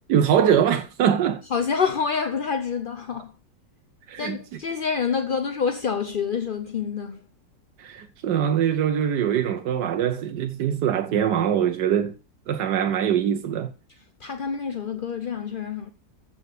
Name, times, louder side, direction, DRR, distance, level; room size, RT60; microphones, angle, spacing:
voice 1, 0.1-1.4 4.1-4.4 7.8-12.1 12.5-13.7, right 9 dB, 70° right, 1.3 m, -23 dB
voice 2, 1.5-3.3 4.2-7.2 14.2-15.9, left 6 dB, 45° left, 0.7 m, -27 dB
15.0 x 5.7 x 6.6 m
omnidirectional pair, 2.0 m